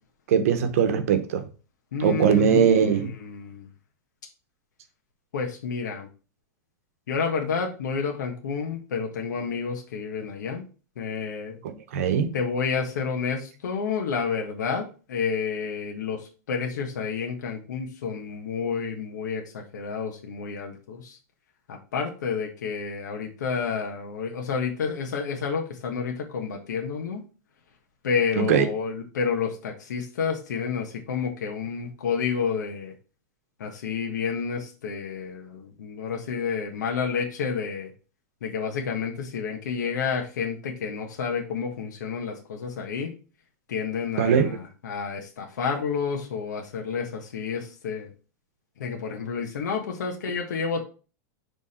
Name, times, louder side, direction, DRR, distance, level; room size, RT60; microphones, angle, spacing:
voice 1, 0.3-1.4 2.0-3.1 11.6-12.3 28.4-28.6 44.2-44.5, right 7 dB, 55° right, 0.9 m, -21 dB
voice 2, 1.9-3.7 5.3-6.1 7.1-10.6 11.0-11.6 12.3-21.2 21.7-27.2 28.0-32.9 33.6-37.9 38.4-43.1 43.7-48.1 48.8-50.8, left 6 dB, 80° left, 1.3 m, -30 dB
6.3 x 3.5 x 4.2 m
supercardioid pair, 175°, 9 cm